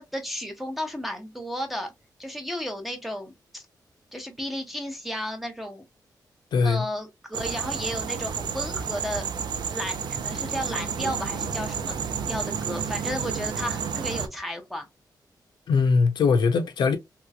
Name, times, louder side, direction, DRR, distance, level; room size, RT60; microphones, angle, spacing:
voice 1, 0.0-1.9 2.2-3.6 4.1-5.8 6.6-9.2 9.7-12.0 12.3-14.9, equal, ahead, 0.7 m, -33 dB
voice 2, 6.5-6.9 15.7-17.0, left 5 dB, 80° left, 0.7 m, -21 dB
sound 1, 7.3-14.3, right 6 dB, 75° right, 0.5 m, -31 dB
3.1 x 3.0 x 2.3 m
wide cardioid pair, 165°, 8 cm